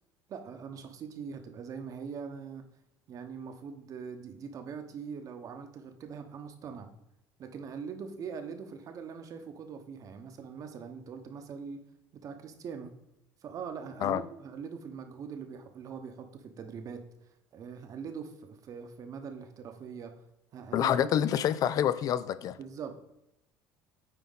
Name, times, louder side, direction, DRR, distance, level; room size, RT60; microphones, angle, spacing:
voice 1, 0.3-2.6 3.1-6.9 7.4-11.8 12.1-12.9 13.4-20.2 20.5-20.9 22.6-23.0, right 6 dB, 45° right, 1.0 m, -42 dB
voice 2, 20.7-22.6, left 10 dB, 50° left, 0.4 m, -27 dB
9.2 x 4.1 x 4.0 m
supercardioid pair, 110°, 8 cm